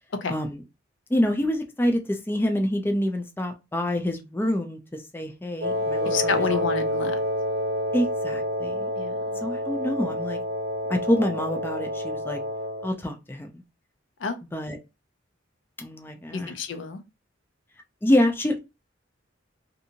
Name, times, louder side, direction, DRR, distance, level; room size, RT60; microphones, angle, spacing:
voice 1, 0.3-0.6 1.1-4.8 5.1-6.7 7.9-8.9 9.4-10.4 10.9-12.4 12.8-13.5 14.5-14.8 15.8-16.5 18.0-18.6, left 1 dB, 10° left, 0.4 m, -26 dB
Wind instrument woodwind instrument, 5.6-12.9, equal, 55° right, 0.4 m, -28 dB
voice 2, 6.0-7.2 8.9-9.2 14.2-14.4 16.3-17.0, left 5 dB, 70° left, 0.5 m, -29 dB
2.7 x 2.6 x 2.7 m
head